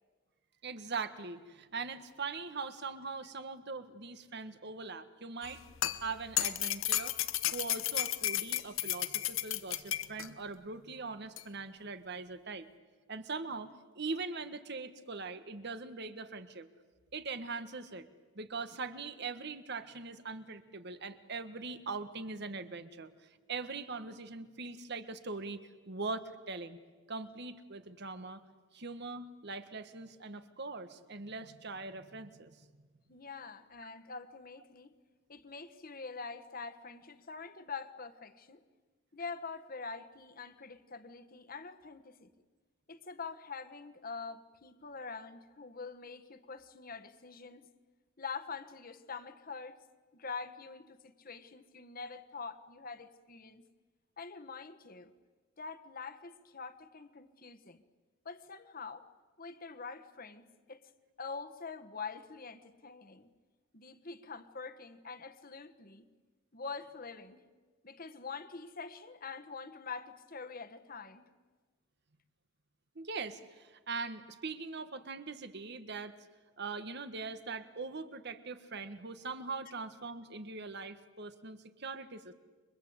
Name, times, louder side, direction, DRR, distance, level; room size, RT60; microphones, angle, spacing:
voice 1, 0.6-5.6 6.0-7.2 7.5-12.7 13.1-16.7 17.1-18.1 18.3-25.6 25.9-26.8 27.1-28.4 28.7-32.6 72.9-76.2 76.6-82.3, right 4 dB, 60° right, 11 dB, 1.6 m, -41 dB
sound 1, 5.4-10.3 11.4-11.5, left 13 dB, 85° left, 1.0 m, -33 dB
voice 2, 33.1-34.9 35.3-38.6 39.1-42.3 42.9-47.7 48.2-49.8 50.1-53.6 54.2-55.1 55.6-57.8 58.2-59.1 59.4-60.9 61.2-63.3 63.7-66.0 66.5-67.4 67.8-71.2, left 4 dB, 45° left, 9 dB, 1.5 m, -45 dB
29.5 x 24.0 x 8.2 m, 1.4 s
head